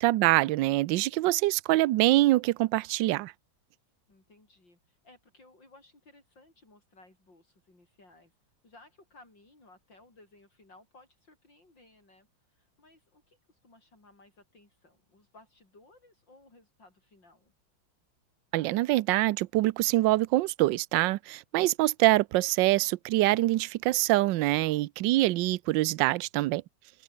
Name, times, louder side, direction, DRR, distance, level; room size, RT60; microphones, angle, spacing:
voice 1, 0.0-3.3 18.5-26.6, right 17 dB, 75° right, 1.3 m, -25 dB
voice 2, 4.1-8.4 8.6-17.5, left 2 dB, 65° left, 8.9 m, -59 dB
open air
omnidirectional pair, 2.1 m